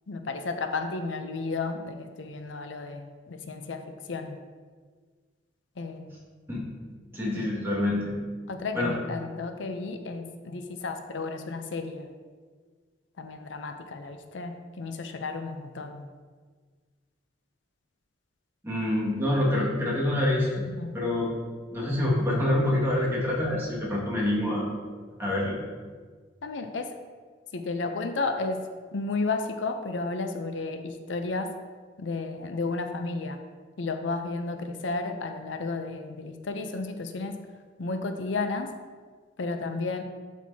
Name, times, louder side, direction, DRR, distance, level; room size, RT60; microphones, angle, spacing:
voice 1, 0.1-3.8 4.1-4.4 5.8-6.2 7.3-7.5 8.5-12.1 13.2-16.1 20.8-20.9 26.4-26.9 27.5-28.6 28.9-31.5 32.0-33.4 33.8-37.4 37.8-38.7 39.4-40.0, left 3 dB, 85° left, 6 dB, 0.6 m, -32 dB
voice 2, 7.1-8.1 8.7-9.0 18.6-20.6 20.9-21.3 21.7-24.7 25.2-25.6, left 1 dB, 15° right, -6 dB, 1.9 m, -26 dB
11.5 x 4.5 x 2.8 m, 1.5 s
head